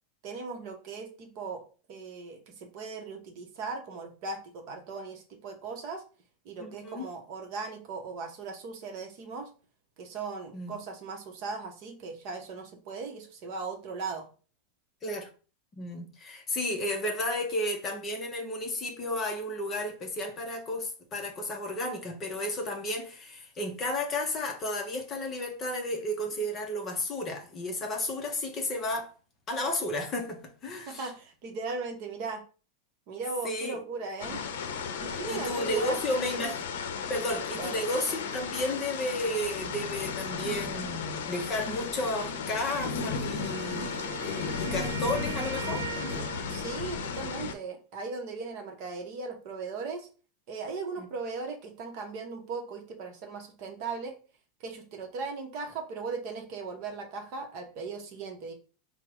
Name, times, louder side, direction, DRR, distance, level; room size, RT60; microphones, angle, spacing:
voice 1, 0.2-1.6 1.9-6.0 6.4-9.5 10.0-14.3 30.9-32.4 33.1-34.4 35.0-36.5 37.6-37.8 46.5-50.1 50.5-54.1 54.6-58.5, right 4 dB, 35° right, 0.8 m, -38 dB
voice 2, 6.6-7.1 10.5-10.8 15.0-15.3 15.8-29.1 29.5-31.1 33.4-33.8 35.3-36.7 37.1-46.3 51.0-51.1, left 1 dB, 20° left, 0.6 m, -33 dB
sound 1, 34.2-47.5, left 5 dB, 75° left, 0.6 m, -34 dB
Wind instrument woodwind instrument, 43.4-46.8, right 9 dB, 75° right, 0.6 m, -41 dB
4.5 x 2.0 x 4.6 m
supercardioid pair, 175°, 0 cm